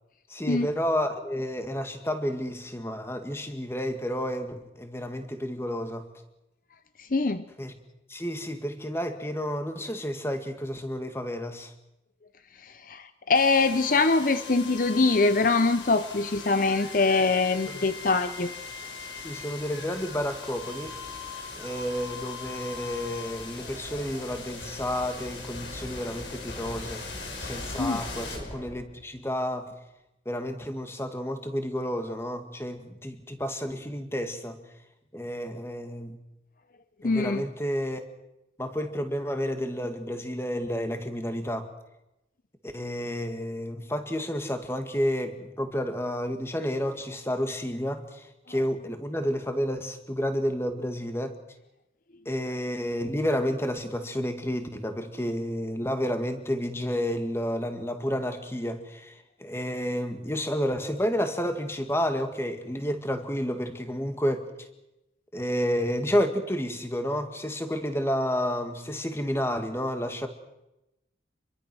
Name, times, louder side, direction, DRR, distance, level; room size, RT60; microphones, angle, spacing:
voice 1, 0.3-6.1 7.6-7.8 8.1-11.7 17.7-17.9 19.2-21.0 21.5-27.1 27.4-29.7 30.3-34.6 35.1-36.2 37.0-38.1 38.6-41.7 42.6-51.4 52.3-64.7 65.3-70.3, equal, 15° left, 7 dB, 2.0 m, -30 dB
voice 2, 7.0-7.4 12.6-18.5 27.8-28.0 37.0-37.4, left 3 dB, 45° left, 11 dB, 0.8 m, -23 dB
sound 1, 13.3-29.2, left 4 dB, 75° left, 5.6 m, -39 dB
27.0 x 22.5 x 6.3 m, 0.93 s
head